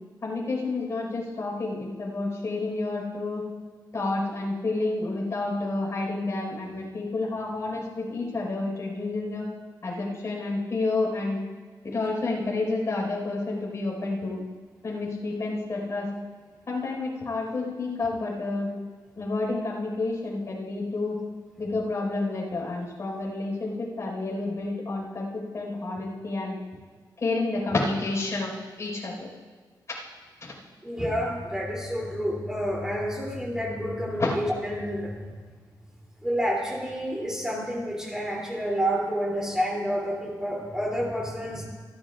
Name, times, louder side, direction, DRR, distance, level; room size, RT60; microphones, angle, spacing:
voice 1, 0.2-3.4 3.9-9.5 9.8-11.4 11.8-14.4 14.8-16.1 16.7-18.7 19.2-21.2 21.6-26.6 27.2-28.5 28.8-29.3 30.4-30.5 34.2-34.3, left 3 dB, 40° left, -3 dB, 4.6 m, -29 dB
voice 2, 30.8-35.2 36.2-41.7, equal, 10° right, -2 dB, 2.9 m, -29 dB
27.0 x 11.5 x 2.4 m, 1.5 s
wide cardioid pair, 155°, 7 cm